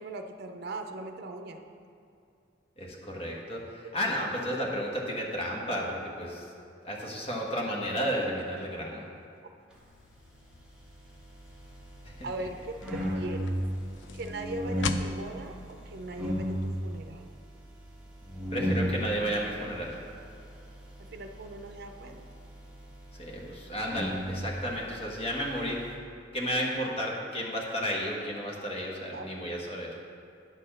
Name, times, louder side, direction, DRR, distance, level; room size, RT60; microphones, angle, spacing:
voice 1, 0.0-1.6 12.2-13.6 14.1-17.4 21.0-22.2 29.1-29.6, right 2 dB, 60° right, 5 dB, 0.6 m, -40 dB
voice 2, 2.8-6.5 6.8-9.0 12.0-12.1 18.5-19.9 23.2-25.8 26.3-29.9, equal, 35° left, -2 dB, 1.2 m, -32 dB
sound 1, 9.7-16.8, left 6 dB, 80° left, 0.4 m, -44 dB
sound 2, 10.5-25.9, equal, 5° right, 1.2 m, -36 dB
9.1 x 4.2 x 6.6 m, 2.5 s
head